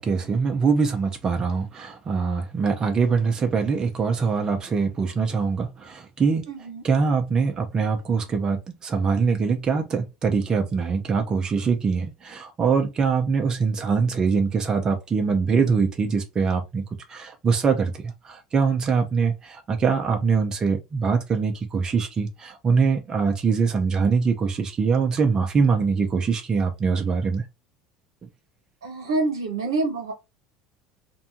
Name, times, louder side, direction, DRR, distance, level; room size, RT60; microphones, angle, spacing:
voice 1, 0.0-6.5 6.8-16.8 17.1-27.5, right 5 dB, 30° right, 0.6 m, -23 dB
voice 2, 6.5-6.8 28.8-30.1, right 3 dB, 85° right, 1.0 m, -26 dB
2.6 x 2.2 x 2.6 m
hypercardioid pair, 75°, 2 cm